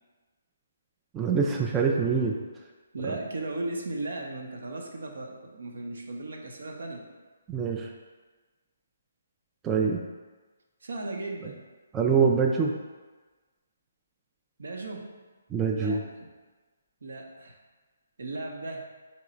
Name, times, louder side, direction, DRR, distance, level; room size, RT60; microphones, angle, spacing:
voice 1, 1.1-2.4 7.5-7.9 9.6-10.0 11.9-12.7 15.5-16.0, right 5 dB, 15° right, 0 dB, 0.3 m, -24 dB
voice 2, 2.9-7.0 10.8-11.6 14.6-15.1 15.8-16.3 17.0-17.6 18.2-18.9, right 2 dB, 75° right, 1 dB, 0.7 m, -36 dB
3.6 x 3.0 x 4.3 m, 1.3 s
hypercardioid pair, 150°, 0 cm